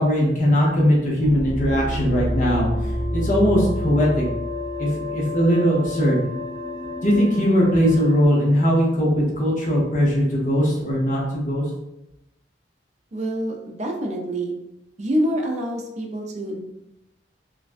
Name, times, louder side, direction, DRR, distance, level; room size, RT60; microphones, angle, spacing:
voice 1, 0.0-2.7 3.1-4.2 4.8-6.2 7.0-11.6, equal, 45° left, -3 dB, 0.7 m, -20 dB
sound 1, 1.2-8.3, left 1 dB, 60° right, 0.8 m, -29 dB
voice 2, 13.1-14.6 15.0-16.6, equal, 40° right, 1 dB, 0.4 m, -26 dB
2.4 x 2.1 x 2.5 m, 0.86 s
head